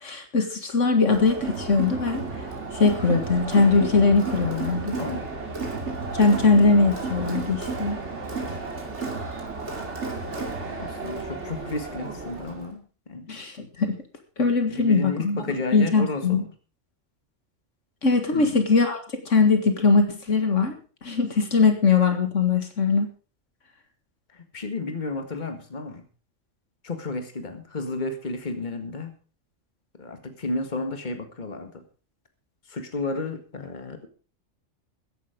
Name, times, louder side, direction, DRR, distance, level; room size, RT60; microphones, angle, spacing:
voice 1, 0.0-2.3 2.7-5.0 6.1-8.0 13.3-13.9 14.4-15.4 15.7-16.4 18.0-23.1, left 4 dB, 70° left, 6 dB, 2.1 m, -21 dB
Crowd, 1.1-12.7, right 3 dB, 60° right, 3.0 m, -32 dB
voice 2, 5.0-5.3 10.7-13.3 14.7-16.5 18.3-18.6 24.3-26.0 26.8-29.1 30.0-31.8 32.7-34.1, left 3 dB, 35° left, 7 dB, 2.0 m, -32 dB
14.5 x 10.5 x 5.1 m, 0.39 s
omnidirectional pair, 1.3 m